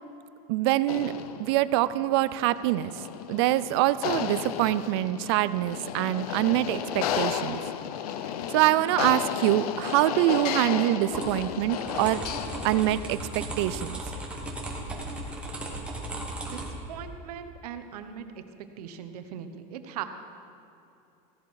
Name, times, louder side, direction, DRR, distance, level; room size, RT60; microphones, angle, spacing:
voice 1, 0.5-2.9 3.3-7.6 8.5-12.2 12.6-14.0, right 15 dB, 45° right, 16 dB, 0.4 m, -25 dB
sound 1, 0.8-13.2, left 9 dB, 80° left, 0.8 m, -33 dB
sound 2, 11.1-16.7, right 2 dB, 5° right, 1.2 m, -36 dB
voice 2, 16.9-18.4 18.8-20.0, right 9 dB, 85° right, 8 dB, 1.1 m, -39 dB
15.5 x 11.5 x 4.8 m, 2.8 s
supercardioid pair, 180°, 19 cm